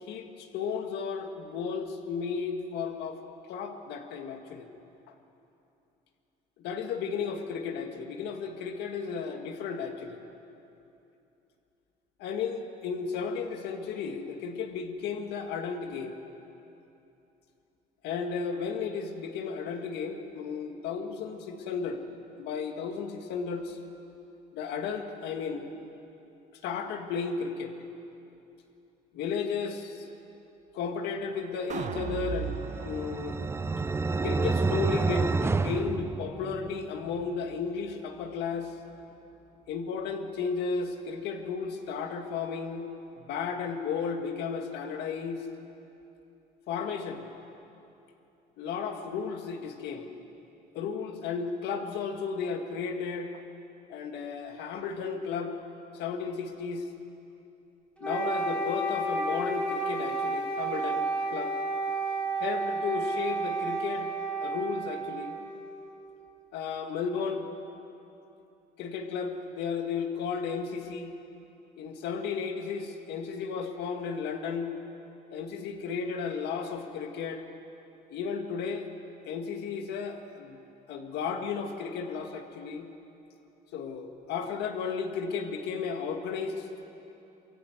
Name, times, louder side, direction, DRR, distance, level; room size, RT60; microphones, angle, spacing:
voice 1, 0.0-3.2 3.5-4.7 6.6-10.2 12.2-16.2 18.0-22.0 22.4-23.8 24.5-25.7 26.6-27.7 29.1-30.1 30.7-33.4 34.2-38.7 39.7-42.9 43.1-45.5 46.7-47.3 48.6-50.1 50.7-53.3 53.9-55.5 55.9-56.9 58.0-61.1 61.3-61.5 62.4-64.1 64.4-65.4 66.5-67.5 68.8-71.1 71.8-74.7 75.3-77.4 78.1-78.9 79.2-80.6 80.9-82.9 83.7-86.7, left 5 dB, 80° left, 5 dB, 2.0 m, -34 dB
sound 1, 31.7-37.9 38.3-38.4, right 7 dB, 45° right, 1.2 m, -41 dB
sound 2, 32.3-36.9, right 4 dB, 15° right, 0.5 m, -29 dB
Wind instrument woodwind instrument, 58.0-66.1, right 2 dB, 5° left, 3.6 m, -31 dB
23.5 x 15.5 x 8.1 m, 2.9 s
cardioid pair, 110°, 17 cm